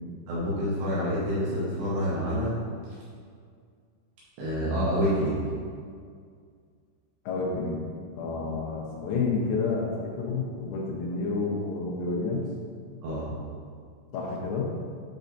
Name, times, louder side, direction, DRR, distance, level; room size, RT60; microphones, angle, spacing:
voice 1, 0.3-2.6 4.4-5.4 13.0-13.3, equal, 70° right, -8 dB, 2.7 m, -27 dB
voice 2, 7.3-7.8 8.2-12.5 14.1-14.7, left 4 dB, 90° left, -3 dB, 3.8 m, -29 dB
8.7 x 5.5 x 2.7 m, 2.1 s
omnidirectional pair, 5.9 m